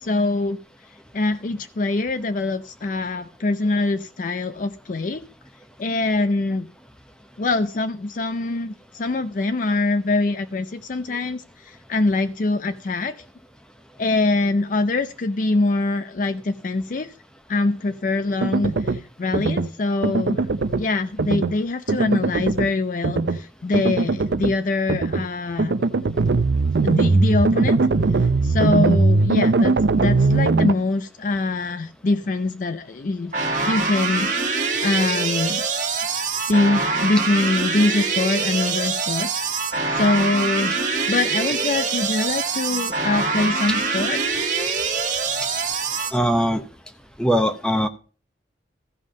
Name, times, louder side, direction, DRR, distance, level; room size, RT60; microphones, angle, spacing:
voice 1, 0.0-0.6 1.1-5.3 5.8-6.7 7.4-13.2 14.0-17.1 17.5-20.4 20.8-25.8 26.8-27.8 28.1-34.5 34.8-35.6 36.4-39.4 39.9-40.7 41.1-44.2, left 2 dB, 45° left, 9 dB, 0.5 m, -24 dB
sound 1, 18.4-19.0 19.3-19.7 20.0-20.8 21.2-21.5 21.9-22.7 23.0-23.4 23.7-24.5 24.9-25.2 25.6-30.7, right 3 dB, 65° right, 0.5 m, -20 dB
sound 2, 33.3-46.1, right 4 dB, 40° right, 1.6 m, -24 dB
voice 2, 46.1-46.6 47.2-47.9, equal, 5° left, 9 dB, 0.7 m, -20 dB
14.5 x 5.4 x 5.2 m, 0.37 s
head